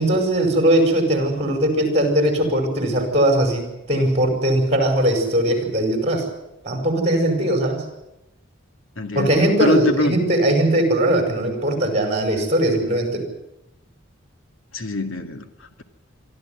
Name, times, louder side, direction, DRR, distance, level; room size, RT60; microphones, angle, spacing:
voice 1, 0.0-6.3 6.6-7.9 9.1-13.3, right 1 dB, 30° right, 5 dB, 5.2 m, -20 dB
voice 2, 9.0-10.2 14.7-15.5, left 1 dB, 80° left, 7 dB, 2.2 m, -23 dB
24.0 x 13.0 x 9.6 m, 0.90 s
head